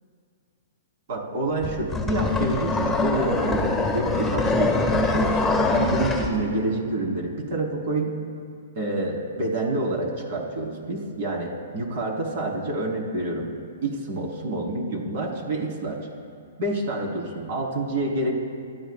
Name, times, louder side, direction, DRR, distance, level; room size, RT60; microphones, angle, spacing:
voice 1, 1.1-8.1 8.8-13.5 13.8-16.0 16.6-18.3, right 2 dB, 55° right, -1 dB, 3.6 m, -28 dB
sound 1, 1.6-6.3, left 2 dB, 5° left, 1.7 m, -23 dB
28.0 x 13.0 x 2.4 m, 2.3 s
hypercardioid pair, 130°, 0 cm